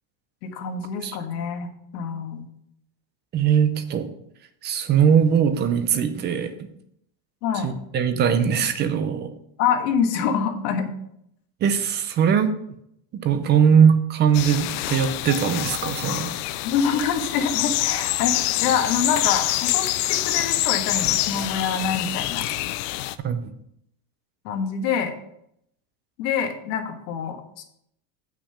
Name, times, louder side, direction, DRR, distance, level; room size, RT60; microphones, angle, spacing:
voice 1, 0.4-2.5 7.4-7.7 9.6-10.9 16.6-22.4 24.5-25.1 26.2-27.6, left 7 dB, 80° left, 5 dB, 1.7 m, -26 dB
voice 2, 3.3-4.1 4.6-6.7 7.6-9.3 11.6-12.5 13.1-16.3 23.2-23.5, right 7 dB, 25° right, 10 dB, 0.5 m, -20 dB
sound 1, 14.3-23.1, left 16 dB, 50° left, 0.5 m, -26 dB
8.5 x 5.9 x 5.5 m, 0.74 s
cardioid pair, 165°, 48 cm